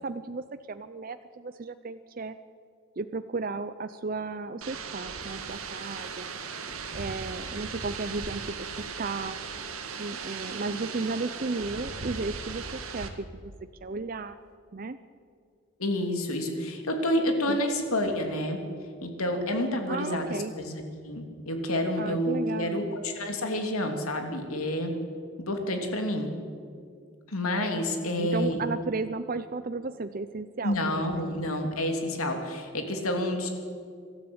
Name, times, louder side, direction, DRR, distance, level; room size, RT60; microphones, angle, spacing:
voice 1, 0.0-2.4 3.0-6.3 6.9-9.4 10.0-13.5 13.8-14.4 14.7-15.0 17.5-17.6 19.9-20.5 22.0-22.8 28.0-30.7, right 3 dB, 40° right, 11 dB, 0.5 m, -34 dB
sound 1, 4.6-13.1, right 5 dB, 85° right, 1.9 m, -37 dB
voice 2, 15.8-18.6 19.0-24.9 25.5-26.3 27.3-28.6 30.6-33.5, left 1 dB, 85° left, 4 dB, 3.0 m, -29 dB
23.5 x 13.0 x 8.8 m, 2.3 s
head